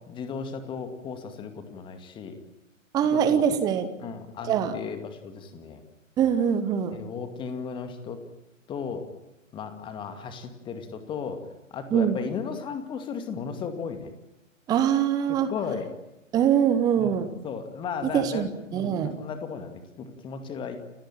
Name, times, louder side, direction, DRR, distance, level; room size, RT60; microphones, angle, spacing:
voice 1, 0.0-2.4 3.1-3.4 4.0-5.8 6.9-8.2 8.7-9.1 9.5-14.1 15.3-15.9 17.0-20.8, left 6 dB, 10° left, 8 dB, 2.2 m, -35 dB
voice 2, 2.9-3.9 4.5-4.7 6.2-7.0 11.9-12.2 14.7-15.5 16.3-17.3 18.1-19.2, right 8 dB, 10° right, 11 dB, 1.1 m, -23 dB
30.0 x 16.5 x 8.9 m, 0.94 s
figure-of-eight pair, 125°, 39 cm